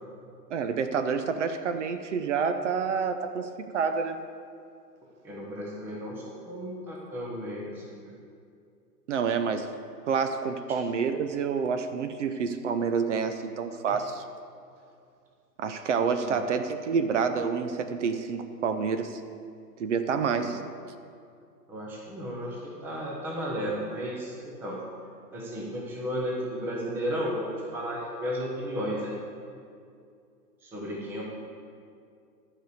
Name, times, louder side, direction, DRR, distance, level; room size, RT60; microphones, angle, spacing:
voice 1, 0.5-4.2 9.1-9.7 10.1-14.2 15.6-19.2 19.8-20.6, right 6 dB, 45° right, 9 dB, 0.7 m, -28 dB
voice 2, 5.2-8.1 13.9-14.0 16.2-16.4 20.4-20.6 21.7-24.8 25.3-29.2 30.6-31.2, equal, 5° right, -2 dB, 0.6 m, -34 dB
12.5 x 5.1 x 7.9 m, 2.4 s
hypercardioid pair, 135°, 50 cm